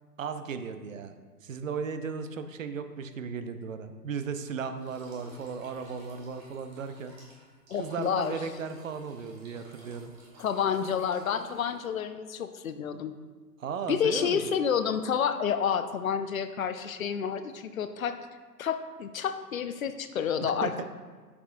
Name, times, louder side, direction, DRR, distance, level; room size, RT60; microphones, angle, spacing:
voice 1, 0.2-1.1 1.4-7.1 7.8-10.1 13.6-14.5 20.4-20.8, right 6 dB, 55° right, 9 dB, 0.6 m, -36 dB
sound 1, 4.8-12.0, right 1 dB, 10° right, 0.8 m, -54 dB
voice 2, 7.7-8.4 10.4-13.2 13.9-18.2 18.6-20.7, left 7 dB, 60° left, 10 dB, 0.5 m, -29 dB
7.7 x 6.0 x 2.5 m, 1.4 s
hypercardioid pair, 145°, 49 cm